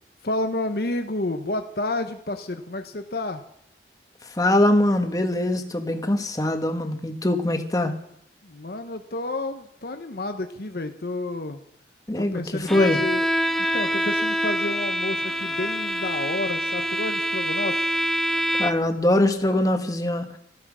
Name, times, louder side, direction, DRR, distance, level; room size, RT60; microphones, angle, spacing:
voice 1, 0.2-3.4 8.4-11.6 12.2-13.3 13.7-17.9, left 2 dB, 60° left, 7 dB, 0.9 m, -30 dB
voice 2, 4.3-7.9 12.1-13.0 18.6-20.3, left 1 dB, 20° left, 6 dB, 1.4 m, -22 dB
Bowed string instrument, 12.7-19.0, equal, ahead, 0.5 m, -25 dB
14.0 x 13.0 x 6.2 m, 0.73 s
head